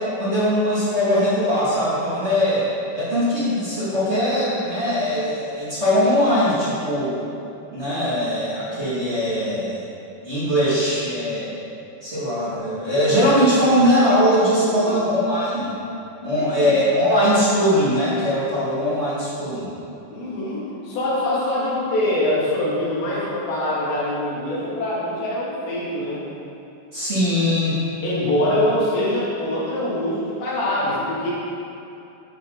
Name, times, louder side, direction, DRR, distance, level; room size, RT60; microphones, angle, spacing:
voice 1, 0.0-2.7 2.9-7.2 7.7-9.9 10.2-11.5 12.0-15.7 16.2-19.7 26.9-27.8, equal, 20° right, -10 dB, 2.2 m, -20 dB
voice 2, 16.2-16.8 20.1-26.2 28.0-31.3, left 1 dB, 80° left, -8 dB, 5.2 m, -24 dB
11.5 x 10.0 x 4.1 m, 2.7 s
omnidirectional pair, 4.9 m